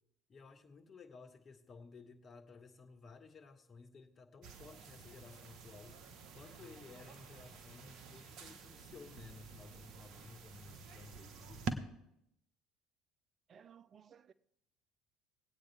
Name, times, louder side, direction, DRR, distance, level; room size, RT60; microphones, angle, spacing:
voice 1, 0.3-6.0 6.4-11.7, left 4 dB, 35° left, 1.7 m, -56 dB
sound 1, 4.4-11.7, right 5 dB, 60° right, 1.1 m, -48 dB
voice 2, 13.5-14.3, right 8 dB, 40° right, 0.5 m, -59 dB
20.5 x 8.7 x 3.5 m
hypercardioid pair, 65°, 0 cm